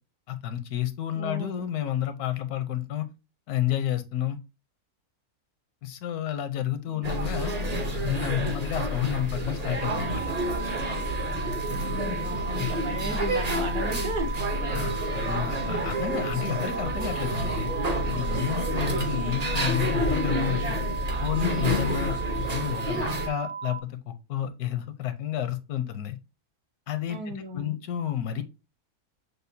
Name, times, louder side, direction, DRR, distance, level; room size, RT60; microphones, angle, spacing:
voice 1, 0.3-3.1 3.5-4.4 5.8-7.5 7.9-10.2 12.6-12.7 14.7-17.7 18.1-20.8 21.2-26.2 26.9-28.4, left 11 dB, 80° left, 1.1 m, -30 dB
voice 2, 1.1-1.6 6.9-7.0 11.6-14.3 27.1-27.8, right 1 dB, 70° right, 1.5 m, -35 dB
sound 1, 7.0-23.3, equal, 40° right, 0.6 m, -29 dB
sound 2, 9.8-23.8, right 6 dB, 15° left, 0.3 m, -36 dB
6.5 x 2.3 x 2.7 m
omnidirectional pair, 1.6 m